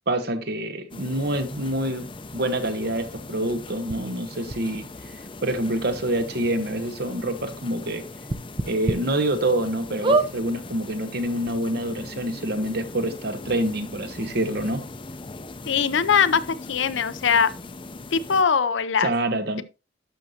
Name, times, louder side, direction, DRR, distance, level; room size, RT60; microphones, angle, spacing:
voice 1, 0.1-8.0 8.7-14.9 19.0-19.6, right 1 dB, 55° right, 1.1 m, -27 dB
sound 1, 0.9-18.4, left 2 dB, 25° left, 0.6 m, -40 dB
sound 2, 3.9-4.0 4.5-4.6 5.6-5.7 6.0-6.1 6.5-6.6 8.3-9.0 9.5-9.6 10.0-10.3 11.1-11.2 11.4-11.5, right 3 dB, 25° right, 0.6 m, -23 dB
voice 2, 15.7-17.5 18.1-19.1, left 6 dB, 70° left, 0.6 m, -21 dB
11.5 x 6.3 x 2.8 m
head